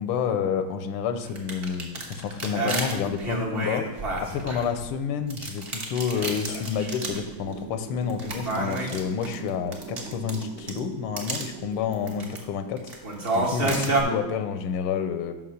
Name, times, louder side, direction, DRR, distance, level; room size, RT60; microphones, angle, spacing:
voice 1, 0.0-3.9 4.2-12.9 13.3-15.3, left 7 dB, 90° left, 9 dB, 1.6 m, -29 dB
sound 1, 1.2-4.9 5.3-7.3 7.5-7.6 8.1-10.8 11.2-11.4 11.9-12.4 12.8-14.0, right 2 dB, 40° right, 1.0 m, -29 dB
sound 2, 7.0-12.9, right 7 dB, 85° right, 1.6 m, -42 dB
5.8 x 5.6 x 6.4 m, 1.1 s
omnidirectional pair, 2.4 m